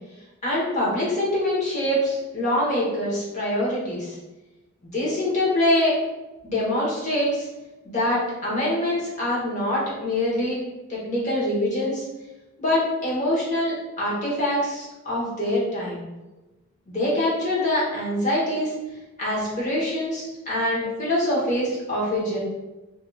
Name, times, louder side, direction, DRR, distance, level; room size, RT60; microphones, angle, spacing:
voice 1, 0.4-4.2 4.8-6.0 6.4-7.5 7.8-10.6 10.9-12.0 12.6-16.1 16.9-18.7 19.2-22.4, left 1 dB, 40° left, -6 dB, 1.1 m, -24 dB
2.8 x 2.5 x 2.3 m, 1.1 s
head